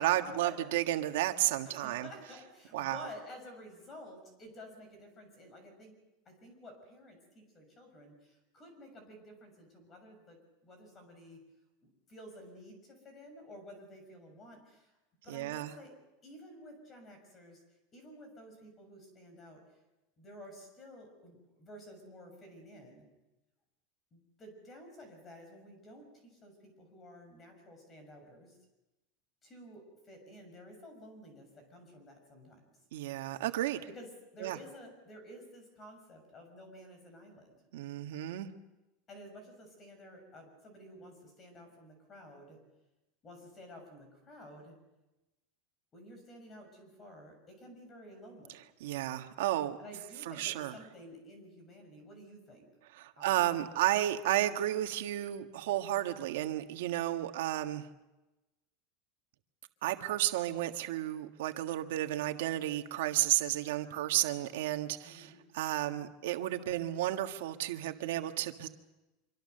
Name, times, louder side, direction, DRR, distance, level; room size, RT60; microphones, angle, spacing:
voice 1, 0.0-2.1 2.7-3.1 15.3-15.7 32.9-33.8 34.4-34.6 37.7-38.5 48.8-49.8 50.2-50.8 52.9-57.9 59.8-68.7, right 14 dB, 85° right, 6 dB, 1.6 m, -32 dB
voice 2, 1.7-5.9 6.2-11.4 11.8-14.9 15.2-15.9 16.2-17.6 17.9-19.6 20.2-23.0 24.1-28.6 29.4-32.7 33.9-37.6 39.1-42.6 43.2-44.7 45.9-48.6 49.8-52.7 53.2-53.5 65.0-65.4, equal, 20° left, 5 dB, 6.5 m, -52 dB
25.5 x 24.5 x 6.8 m, 1.0 s
supercardioid pair, 170°, 0 cm